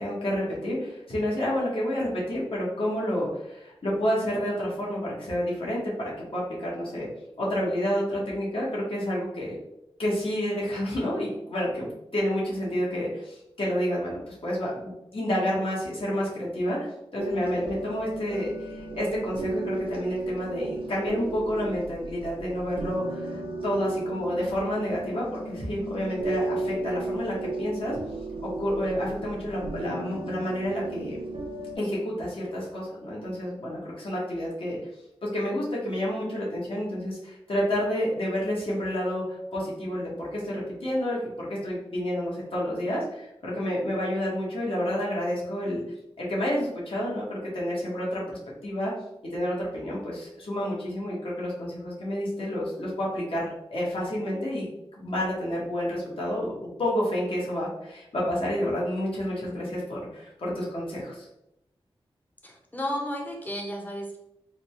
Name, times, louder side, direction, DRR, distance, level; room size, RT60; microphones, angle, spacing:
voice 1, 0.0-7.1 7.4-9.6 10.0-23.4 23.6-28.0 28.4-31.2 31.8-34.8 35.3-45.8 46.2-48.9 49.3-54.7 55.0-56.5 56.8-61.3, equal, 65° left, -6 dB, 1.3 m, -29 dB
sound 1, 17.2-31.8, right 2 dB, 60° right, 0.6 m, -34 dB
voice 2, 62.4-64.2, equal, 15° left, 1 dB, 0.7 m, -33 dB
3.8 x 2.3 x 3.1 m, 0.85 s
wide cardioid pair, 80°, 10 cm